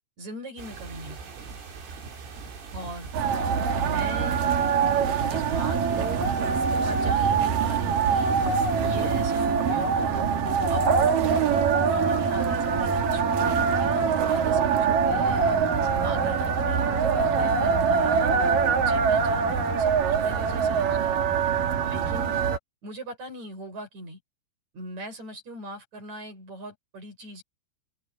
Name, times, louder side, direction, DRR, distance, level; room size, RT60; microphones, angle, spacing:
voice 1, 0.2-1.6 2.7-3.1 3.8-4.4 5.3-6.3 6.9-8.4 8.8-10.4 10.7-15.6 16.0-18.4 18.8-21.2 21.8-22.4 22.8-24.2 24.7-27.4, right 1 dB, 35° right, 7.6 m, -40 dB
sound 1, 0.6-9.5, right 5 dB, 85° right, 8.2 m, -41 dB
sound 2, 3.1-22.6, right 6 dB, 55° right, 3.3 m, -23 dB
omnidirectional pair, 5.5 m